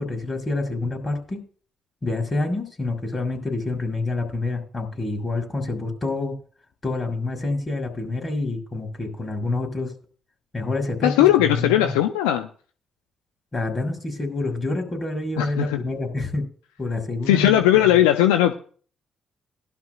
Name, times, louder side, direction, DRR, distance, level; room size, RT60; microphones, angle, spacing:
voice 1, 0.0-1.4 2.0-6.4 6.8-9.9 10.5-11.9 13.5-16.5 16.8-17.8, left 2 dB, 35° left, 5.5 m, -27 dB
voice 2, 11.0-12.5 15.4-15.8 17.3-18.5, left 13 dB, 85° left, 0.5 m, -18 dB
17.5 x 12.0 x 2.4 m
hypercardioid pair, 45°, 0 cm